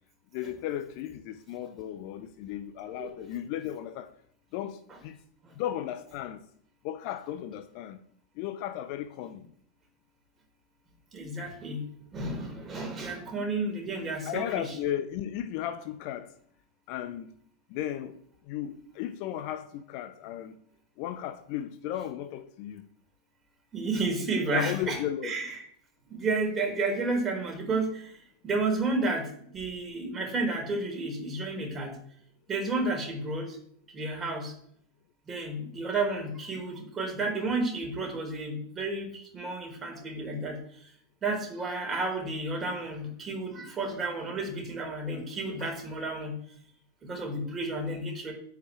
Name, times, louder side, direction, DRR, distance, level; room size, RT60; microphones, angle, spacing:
voice 1, 0.3-4.1 4.5-5.2 5.5-6.4 6.8-8.0 8.4-9.4 14.3-16.3 16.9-17.3 17.7-18.2 18.5-20.5 21.0-22.8 24.5-25.4, left 11 dB, 45° left, 0.8 m, -35 dB
voice 2, 11.1-11.8 12.1-14.7 23.7-25.6 26.1-32.0 32.5-33.6 33.9-34.5 35.3-40.9 41.2-46.4 47.0-48.3, right 2 dB, 20° right, 4.5 m, -31 dB
9.4 x 5.9 x 8.3 m
figure-of-eight pair, 90°, 0 cm